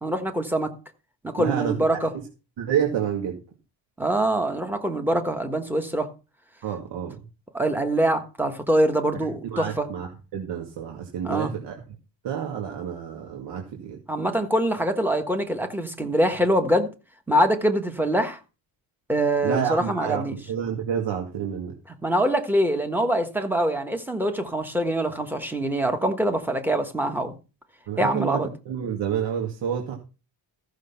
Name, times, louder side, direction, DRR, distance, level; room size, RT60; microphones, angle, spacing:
voice 1, 0.0-0.7 1.2-2.1 4.0-6.1 7.5-9.9 11.2-11.5 14.1-16.9 17.3-18.4 19.1-20.4 22.0-27.4 28.0-28.5, right 1 dB, 5° right, 1.4 m, -24 dB
voice 2, 1.4-2.0 2.6-3.4 6.6-7.2 9.4-11.8 12.2-14.0 19.4-21.8 27.9-29.9, right 8 dB, 70° right, 2.3 m, -29 dB
14.5 x 6.4 x 5.8 m
cardioid pair, 165°, 43 cm